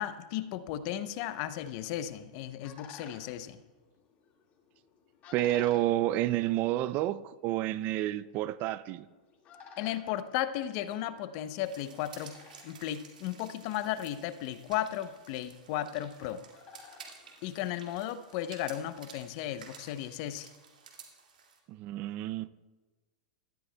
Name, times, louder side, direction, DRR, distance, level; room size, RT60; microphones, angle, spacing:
voice 1, 0.0-3.6 9.8-16.4 17.4-20.5, left 12 dB, 50° left, 0.6 m, -35 dB
sound 1, 2.2-18.2, left 6 dB, 35° left, 1.9 m, -57 dB
voice 2, 5.3-9.1 21.7-22.5, right 14 dB, 40° right, 0.4 m, -30 dB
sound 2, 11.6-21.6, right 6 dB, 90° right, 2.1 m, -53 dB
16.5 x 12.5 x 2.2 m
hypercardioid pair, 120°, 4 cm